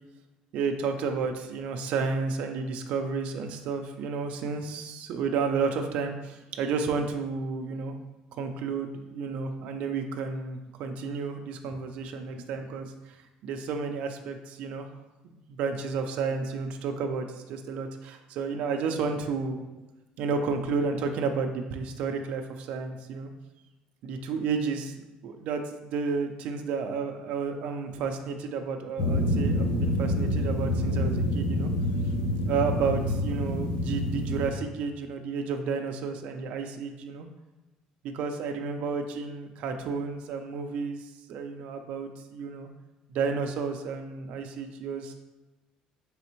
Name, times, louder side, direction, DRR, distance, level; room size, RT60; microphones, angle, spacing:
voice 1, 0.5-8.0 8.4-13.2 13.4-14.9 15.2-19.7 20.2-23.3 24.0-24.9 25.2-31.7 32.4-37.3 38.1-42.7 43.1-45.1, right 5 dB, 55° right, 5 dB, 0.3 m, -31 dB
sound 1, 29.0-34.5, left 1 dB, 50° left, 0.5 m, -27 dB
4.2 x 3.4 x 2.9 m, 1.1 s
cardioid pair, 175°, 3 cm